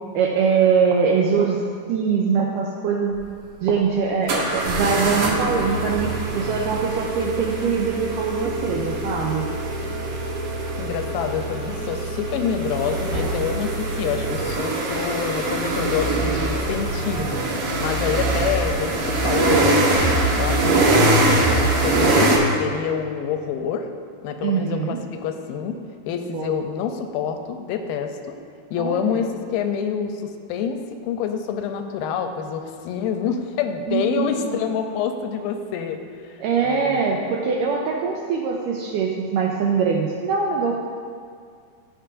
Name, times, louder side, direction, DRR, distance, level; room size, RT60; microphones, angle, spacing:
voice 1, 0.1-1.6 1.9-3.2 3.6-9.5 24.4-25.0 26.3-26.5 28.8-29.2 33.9-34.6 36.4-40.7, right 6 dB, 85° right, -1 dB, 1.9 m, -22 dB
sound 1, 3.1-3.2 4.3-22.4, right 2 dB, 65° right, 2.3 m, -23 dB
voice 2, 10.8-17.4 17.8-23.9 24.2-25.8 26.1-28.3 28.7-36.4 36.6-37.0, left 7 dB, 85° left, 6 dB, 2.3 m, -27 dB
16.0 x 5.4 x 2.5 m, 2.1 s
omnidirectional pair, 4.4 m